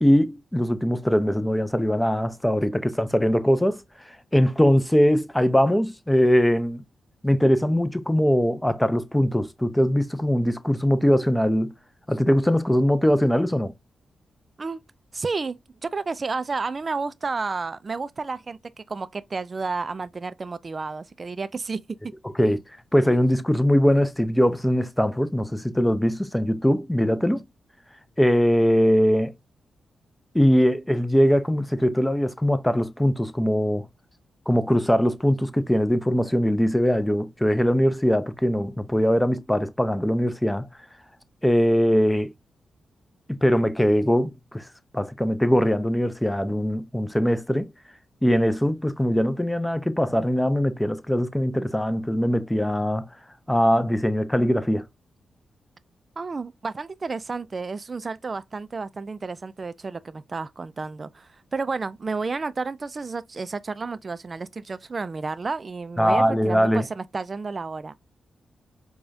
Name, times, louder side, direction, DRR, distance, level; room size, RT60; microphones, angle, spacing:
voice 1, 0.0-3.8 4.3-6.8 7.2-11.7 12.1-13.7 22.4-22.6 22.9-27.4 28.2-29.3 30.3-33.9 34.5-40.7 41.4-42.3 43.3-44.6 44.9-47.7 48.2-53.1 53.5-54.9 66.0-66.9, equal, 10° left, 0.6 m, -21 dB
voice 2, 15.1-22.0 56.2-67.9, right 4 dB, 45° right, 0.4 m, -31 dB
4.8 x 2.3 x 2.6 m
cardioid pair, 55°, 0 cm